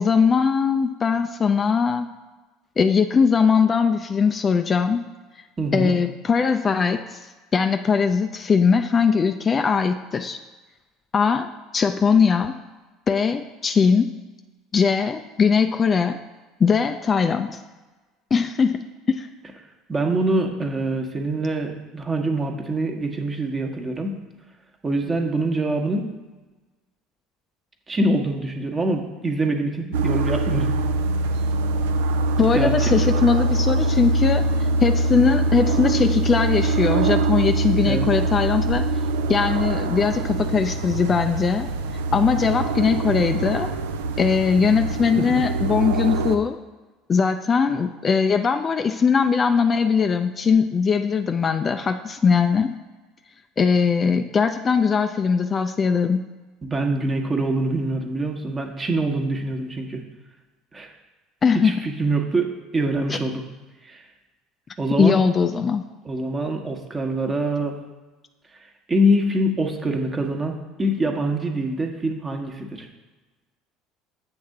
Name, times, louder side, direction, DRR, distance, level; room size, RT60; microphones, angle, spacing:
voice 1, 0.0-2.1 2.8-5.1 5.7-7.2 7.5-10.4 11.1-12.6 13.1-14.1 14.7-16.2 16.6-17.6 18.3-19.3 32.4-38.9 39.3-41.7 42.1-43.7 44.2-46.6 47.1-52.7 53.6-56.3 61.4-61.8 65.0-65.8, left 5 dB, 30° left, 7 dB, 0.4 m, -20 dB
voice 2, 5.6-6.0 19.9-24.2 24.8-26.1 27.9-30.7 32.5-33.1 37.9-38.1 45.2-45.3 56.6-60.0 60.7-60.9 61.5-63.4 63.9-64.0 64.8-65.3 66.0-67.8 68.9-72.9, right 1 dB, 25° right, 3 dB, 1.1 m, -24 dB
sound 1, 29.9-46.4, right 2 dB, 70° right, 0.4 m, -23 dB
7.8 x 3.5 x 6.5 m, 1.2 s
figure-of-eight pair, 65°, 0 cm